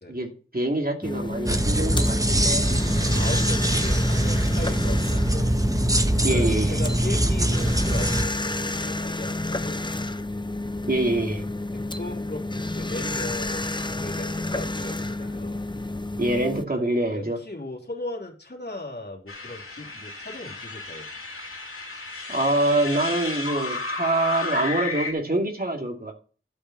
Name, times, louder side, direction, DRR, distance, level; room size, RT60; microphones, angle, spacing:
voice 1, 0.1-2.7 6.1-6.8 10.9-11.4 16.2-17.4 22.3-26.1, right 1 dB, 45° right, 2 dB, 2.5 m, -25 dB
sound 1, 1.0-16.6, left 2 dB, 20° left, 0.7 m, -30 dB
sound 2, 1.5-8.3, right 1 dB, 15° right, 0.9 m, -23 dB
voice 2, 2.9-5.6 6.3-10.0 11.7-15.7 17.1-21.1, left 2 dB, 55° left, -1 dB, 3.1 m, -37 dB
sound 3, 19.3-25.1, left 3 dB, 90° left, 2.4 m, -33 dB
11.5 x 5.5 x 7.2 m, 0.39 s
wide cardioid pair, 40°, 21 cm